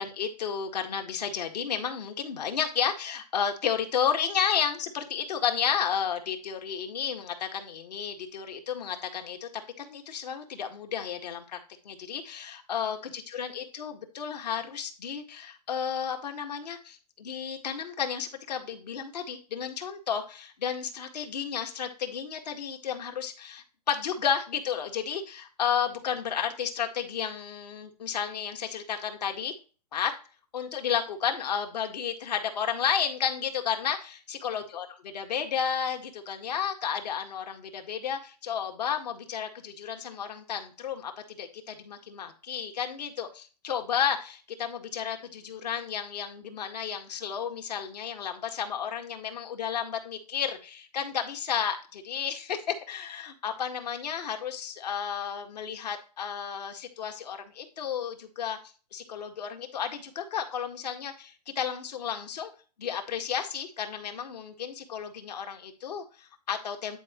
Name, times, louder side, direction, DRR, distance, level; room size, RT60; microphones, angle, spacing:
voice 1, 0.0-11.6 11.9-29.5 29.9-30.1 30.5-58.6 58.9-62.5 62.8-67.0, left 8 dB, 75° left, 5 dB, 1.8 m, -32 dB
10.5 x 4.9 x 3.0 m, 0.36 s
hypercardioid pair, 160°, 21 cm